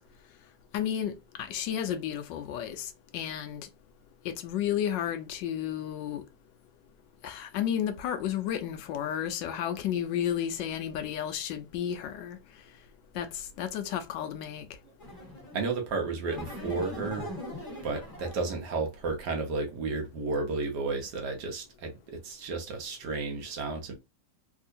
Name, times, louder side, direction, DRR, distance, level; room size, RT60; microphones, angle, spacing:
voice 1, 0.7-1.1 1.4-3.7 4.2-6.2 7.2-12.4 13.1-14.7, left 10 dB, 80° left, 1.2 m, -32 dB
sound 1, 15.0-15.7 16.3-18.5, left 1 dB, 10° left, 1.6 m, -40 dB
voice 2, 15.5-17.3 17.8-23.9, right 3 dB, 65° right, 1.3 m, -32 dB
3.6 x 2.7 x 2.5 m
omnidirectional pair, 2.0 m